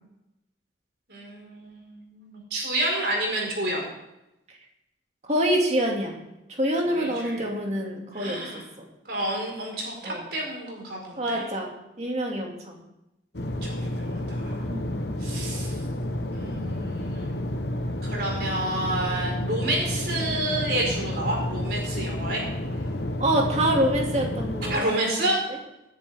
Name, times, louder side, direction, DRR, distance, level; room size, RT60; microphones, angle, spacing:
voice 1, 1.1-3.8 6.9-7.4 8.1-8.6 9.1-11.5 13.6-14.6 15.2-15.7 16.3-17.4 18.0-22.4 24.7-25.4, right 1 dB, 60° right, -1 dB, 4.8 m, -30 dB
voice 2, 5.3-6.2 6.5-8.6 10.0-10.2 11.2-11.7 12.0-12.7 14.6-15.0 23.2-25.3, right 1 dB, 35° right, 0 dB, 2.4 m, -26 dB
sound 1, 13.3-24.8, left 1 dB, 65° left, 1.1 m, -30 dB
19.5 x 10.5 x 3.6 m, 0.90 s
head